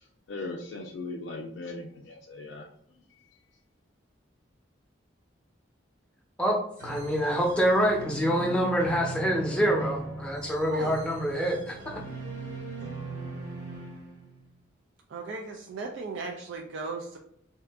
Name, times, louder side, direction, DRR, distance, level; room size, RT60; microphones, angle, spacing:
voice 1, 0.3-2.7, left 3 dB, 75° left, 0 dB, 0.4 m, -38 dB
voice 2, 6.4-12.0, equal, 5° left, -1 dB, 0.5 m, -26 dB
sound 1, 6.8-14.5, right 3 dB, 45° right, 0.9 m, -39 dB
voice 3, 15.1-17.2, right 3 dB, 80° right, 2 dB, 0.4 m, -36 dB
2.7 x 2.4 x 3.4 m, 0.73 s
head